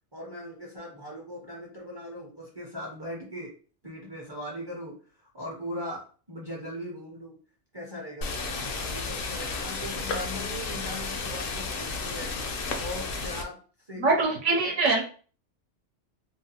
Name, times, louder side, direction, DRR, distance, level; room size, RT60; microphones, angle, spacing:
voice 1, 0.1-3.5 3.8-7.4 7.7-12.4 12.8-13.6 13.9-14.1 14.5-14.9, equal, 30° right, -2 dB, 0.5 m, -39 dB
sound 1, 8.2-13.4, left 4 dB, 60° left, 0.6 m, -33 dB
voice 2, 14.0-15.0, right 3 dB, 80° right, -1 dB, 1.0 m, -23 dB
2.6 x 2.3 x 2.7 m, 0.40 s
omnidirectional pair, 1.3 m